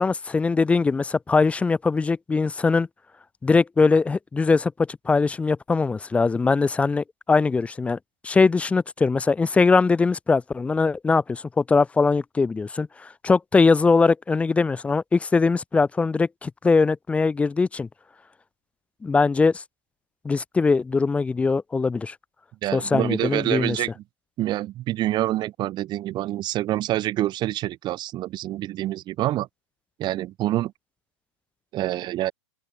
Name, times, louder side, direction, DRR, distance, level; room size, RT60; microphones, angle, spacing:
voice 1, 0.0-2.9 3.4-8.0 8.2-17.9 19.0-19.6 20.2-22.1 22.7-23.8, left 4 dB, 10° left, 0.7 m, -21 dB
voice 2, 22.6-24.0 24.4-29.5 30.0-30.7 31.7-32.3, right 14 dB, 30° right, 2.5 m, -26 dB
open air
hypercardioid pair, 145°, 16 cm